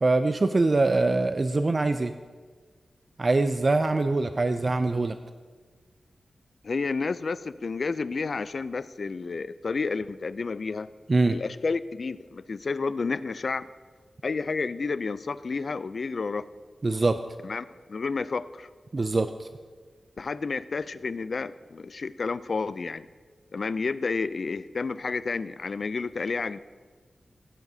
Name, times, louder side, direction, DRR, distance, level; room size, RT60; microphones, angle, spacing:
voice 1, 0.0-2.1 3.2-5.2 11.1-11.4 16.8-17.2 18.9-19.5, right 3 dB, 35° right, 9 dB, 0.3 m, -23 dB
voice 2, 6.6-10.9 11.3-13.7 14.2-16.5 17.4-18.7 20.2-23.1 23.5-26.6, left 4 dB, 50° left, 15 dB, 0.3 m, -30 dB
15.5 x 10.5 x 2.7 m, 1.5 s
wide cardioid pair, 130°, 0 cm